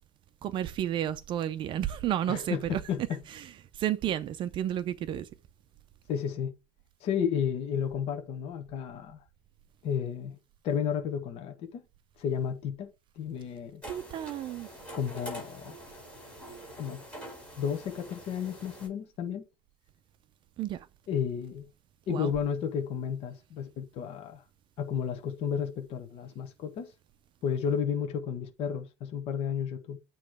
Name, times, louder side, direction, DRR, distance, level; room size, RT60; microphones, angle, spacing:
voice 1, 0.4-2.8 3.8-5.2 13.9-14.7 20.6-20.8 22.1-22.3, right 11 dB, 40° right, 0.4 m, -31 dB
voice 2, 2.3-3.2 6.1-6.5 7.0-9.2 9.8-10.4 10.6-11.8 12.2-12.9 13.2-13.8 14.9-15.8 16.8-17.0 17.6-19.4 21.1-21.7 22.1-24.4 24.8-26.9 27.4-30.0, left 8 dB, 50° left, 1.0 m, -32 dB
vane on the pond, 13.8-18.9, equal, 10° left, 4.3 m, -45 dB
8.6 x 3.0 x 4.7 m
cardioid pair, 160°, 13 cm